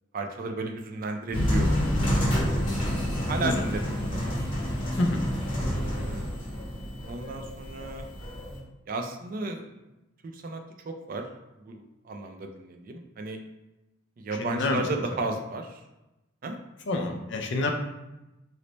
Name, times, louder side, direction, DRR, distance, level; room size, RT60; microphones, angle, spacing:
voice 1, 0.1-1.8 2.1-2.7 3.3-4.4 5.6-6.3 7.1-8.1 8.9-9.7 10.2-11.3 11.6-13.4 14.2-15.8 16.4-16.6, right 2 dB, 45° right, 4 dB, 0.3 m, -34 dB
sound 1, 1.3-8.6, equal, 30° left, 1.0 m, -28 dB
voice 2, 14.4-14.8 16.9-17.7, left 2 dB, 65° left, 3 dB, 0.5 m, -27 dB
3.2 x 2.0 x 3.9 m, 0.98 s
head